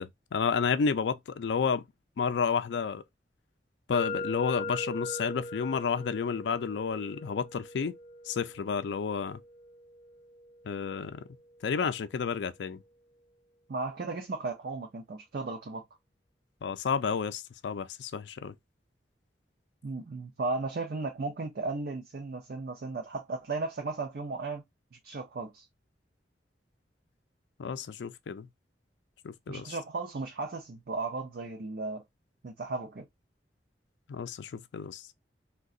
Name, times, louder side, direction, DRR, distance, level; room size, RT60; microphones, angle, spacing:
voice 1, 0.0-1.8 2.2-3.0 3.9-7.9 8.3-9.4 10.6-11.2 11.6-12.8 16.6-18.5 27.6-28.5 29.2-29.7 34.1-35.1, left 6 dB, 80° left, 0.4 m, -31 dB
sound 1, 3.9-11.8, left 2 dB, 35° left, 0.8 m, -41 dB
voice 2, 13.7-15.8 19.8-24.6 24.9-25.7 29.5-32.0 32.4-33.1, right 3 dB, 60° right, 0.5 m, -35 dB
3.7 x 2.2 x 2.4 m
head